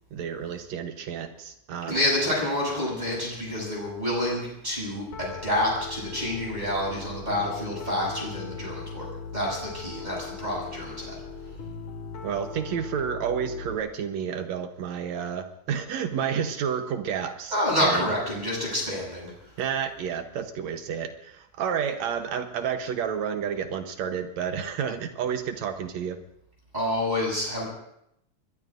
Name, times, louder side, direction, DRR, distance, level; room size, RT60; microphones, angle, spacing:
voice 1, 0.1-2.0 12.2-18.1 19.6-26.2, right 7 dB, 75° right, 7 dB, 2.2 m, -30 dB
voice 2, 1.9-11.2 17.5-19.3 26.7-27.7, left 1 dB, 15° right, -5 dB, 8.0 m, -28 dB
Piano, 5.1-13.8, left 5 dB, 75° left, 3.1 m, -39 dB
25.5 x 21.5 x 2.6 m, 0.77 s
omnidirectional pair, 3.3 m